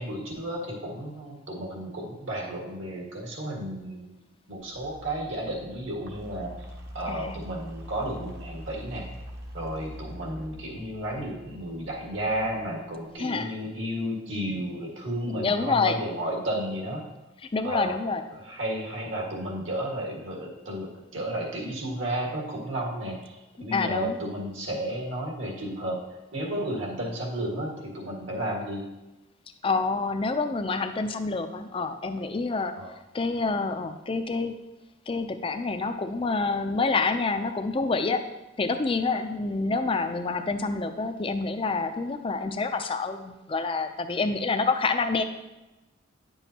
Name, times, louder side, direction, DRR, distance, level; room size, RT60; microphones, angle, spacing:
voice 1, 0.0-4.1 4.5-9.1 9.5-17.0 17.6-18.0 18.3-28.9 32.8-32.9, right 1 dB, 70° right, -1 dB, 1.8 m, -33 dB
sound 1, 4.6-13.1, equal, 55° right, 1.1 m, -44 dB
voice 2, 7.1-7.4 13.2-13.5 15.3-16.0 17.5-18.2 23.7-24.2 29.6-32.7 33.1-34.5 35.1-38.2 38.6-45.2, left 3 dB, 25° left, 8 dB, 0.4 m, -27 dB
9.8 x 7.1 x 2.9 m, 1.0 s
head